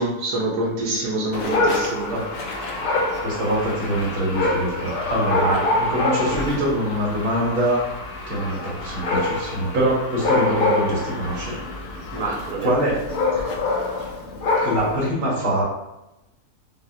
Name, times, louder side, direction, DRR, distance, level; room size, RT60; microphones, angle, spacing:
voice 1, 0.0-2.1 5.4-5.7 12.1-12.7 13.4-13.5, right 2 dB, 85° right, -4 dB, 1.4 m, -26 dB
Dog, 1.3-15.1, left 2 dB, 70° left, 1.0 m, -26 dB
voice 2, 3.2-7.8 8.3-11.6 12.6-13.0 14.6-15.6, right 1 dB, 40° right, -7 dB, 1.4 m, -24 dB
5.1 x 2.1 x 2.7 m, 0.94 s
omnidirectional pair, 1.6 m